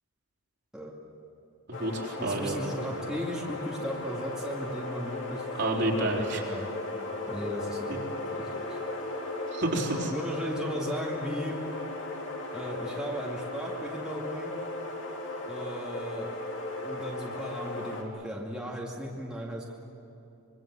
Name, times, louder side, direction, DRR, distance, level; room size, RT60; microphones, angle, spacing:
sound 1, 1.7-18.0, left 2 dB, 55° left, 2.9 m, -36 dB
voice 1, 1.7-2.6 5.6-6.4 9.5-10.1, right 2 dB, 50° right, -1 dB, 3.8 m, -29 dB
voice 2, 2.2-5.4 5.7-6.7 7.3-8.0 8.3-8.8 10.1-11.6 12.5-14.5 15.5-16.3 16.8-19.7, equal, 5° right, -4 dB, 2.4 m, -36 dB
26.0 x 23.5 x 7.7 m, 2.8 s
head